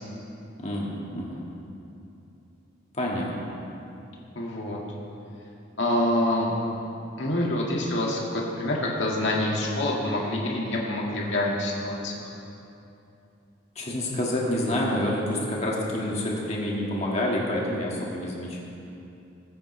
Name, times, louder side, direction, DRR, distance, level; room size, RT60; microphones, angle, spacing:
voice 1, 0.6-1.4 2.9-3.3 13.8-18.6, left 1 dB, 35° left, -3 dB, 1.9 m, -28 dB
voice 2, 4.3-4.8 5.8-6.5 7.2-12.1, left 1 dB, 65° left, -3 dB, 2.0 m, -26 dB
19.5 x 9.1 x 3.3 m, 2.8 s
head